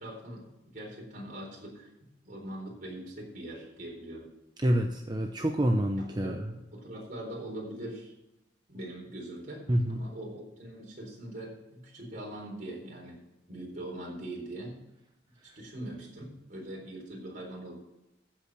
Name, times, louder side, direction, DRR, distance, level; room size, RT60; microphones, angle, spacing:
voice 1, 0.0-1.9 2.2-4.3 6.0-8.1 8.7-13.2 13.5-14.8 15.6-17.8, right 1 dB, 45° right, -2 dB, 4.1 m, -42 dB
voice 2, 4.6-6.5 9.7-10.1 15.5-15.6, equal, 25° right, 3 dB, 0.7 m, -28 dB
15.0 x 5.5 x 6.4 m, 0.91 s
head